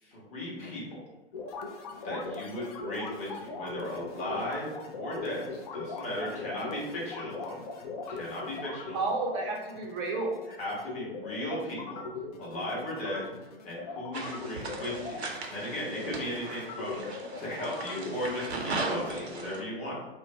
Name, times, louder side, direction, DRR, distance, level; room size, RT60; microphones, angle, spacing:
voice 1, 0.0-0.8 2.0-7.6 8.1-9.0 10.6-12.0 12.4-13.2 13.6-20.0, left 1 dB, 20° left, -5 dB, 0.8 m, -36 dB
sound 1, 1.3-19.2, left 4 dB, 40° left, 0.4 m, -40 dB
voice 2, 6.2-6.8 8.9-10.4, right 3 dB, 25° right, -1 dB, 0.5 m, -32 dB
sound 2, 14.1-19.6, right 3 dB, 75° right, 0.6 m, -37 dB
2.4 x 2.1 x 3.2 m, 1.0 s
figure-of-eight pair, 105°, 32 cm